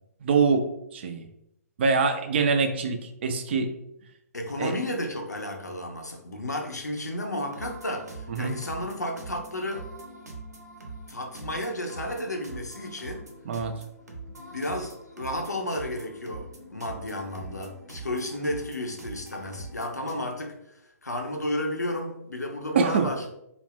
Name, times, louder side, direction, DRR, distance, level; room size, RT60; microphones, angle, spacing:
voice 1, 0.2-1.3 1.8-3.7 4.6-4.7 8.3-8.6 13.5-13.7 22.7-23.1, right 5 dB, 40° right, 6 dB, 0.4 m, -24 dB
voice 2, 4.3-9.8 11.1-13.2 14.5-20.5 21.0-23.3, left 1 dB, 85° left, 2 dB, 0.6 m, -32 dB
sound 1, 7.4-20.1, right 2 dB, 75° right, 0.7 m, -43 dB
2.4 x 2.0 x 3.4 m, 0.82 s
figure-of-eight pair, 130°, 9 cm